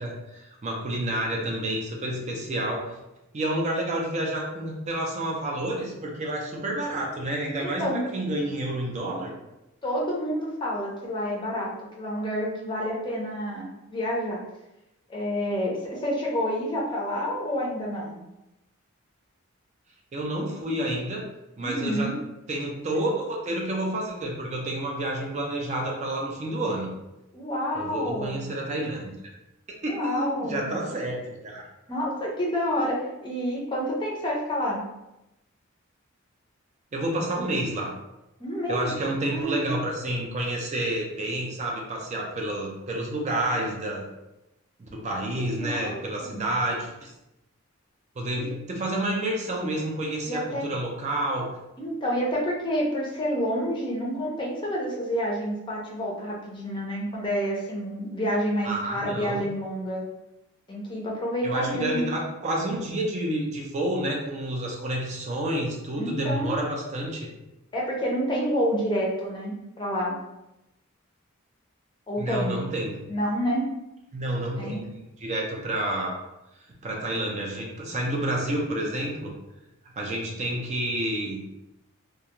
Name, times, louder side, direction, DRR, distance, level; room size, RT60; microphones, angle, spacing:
voice 1, 0.0-3.0 3.3-9.3 20.1-21.3 21.6-22.2 22.5-26.9 27.7-29.1 29.8-31.7 36.9-37.9 38.7-44.1 44.8-47.1 48.2-51.5 58.6-59.4 61.4-67.3 72.2-73.0 74.1-74.8 75.2-76.1 76.8-79.3 80.0-81.4, right 1 dB, 35° right, -1 dB, 0.4 m, -29 dB
voice 2, 7.6-8.0 9.8-14.4 15.1-18.2 21.6-22.1 27.3-28.4 29.8-30.7 31.9-34.8 38.4-38.9 39.3-39.8 45.3-46.4 48.3-48.5 50.2-50.6 51.8-60.0 60.7-62.1 66.0-66.5 67.7-70.2 72.1-72.6 73.1-73.6 74.6-74.8, equal, 25° left, -3 dB, 0.5 m, -29 dB
2.4 x 2.2 x 2.8 m, 0.92 s
head